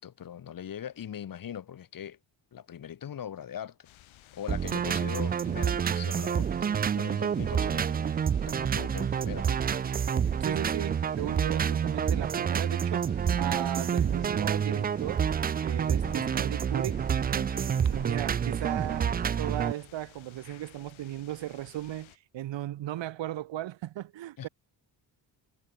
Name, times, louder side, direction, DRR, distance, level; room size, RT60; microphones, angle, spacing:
voice 1, 0.0-2.2 2.5-3.9 4.3-8.0 8.4-9.6 16.0-16.3 24.4-24.5, left 9 dB, 45° left, 3.0 m, -41 dB
sound 1, 3.8-22.2, left 15 dB, 80° left, 6.0 m, -56 dB
sound 2, 4.5-19.7, right 7 dB, 25° right, 0.3 m, -28 dB
voice 2, 10.4-15.3 15.6-24.5, right 14 dB, 70° right, 3.3 m, -37 dB
cardioid pair, 130°, 46 cm